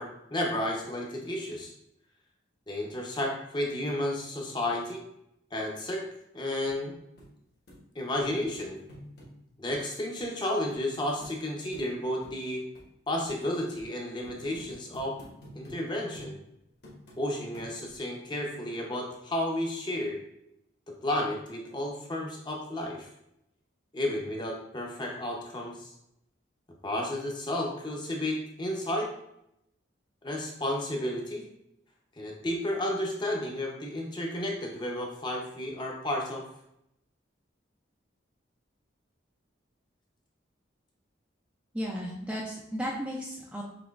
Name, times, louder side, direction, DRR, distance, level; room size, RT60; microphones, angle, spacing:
voice 1, 0.0-1.7 2.7-5.0 5.5-6.0 6.3-6.9 7.9-8.8 9.6-12.6 13.1-15.2 15.5-16.4 17.2-20.2 20.9-23.1 23.9-25.9 26.8-29.1 30.2-31.4 32.2-36.4, left 1 dB, 25° left, 0 dB, 0.7 m, -32 dB
sound 1, 6.7-6.8 7.2-7.3 7.7-7.8 8.2-9.3 9.7-9.9 10.2-10.3 10.7-10.8 11.2-11.3 11.7-11.9 12.2-12.4 12.7-12.9 13.2-13.4 13.8-13.9 14.2-15.8 16.1-16.3 16.8-17.2 17.5-18.0 18.5-18.6, equal, 55° left, 1.2 m, -49 dB
voice 2, 41.7-43.6, equal, 5° right, -4 dB, 0.4 m, -34 dB
5.8 x 3.0 x 2.4 m, 0.80 s
head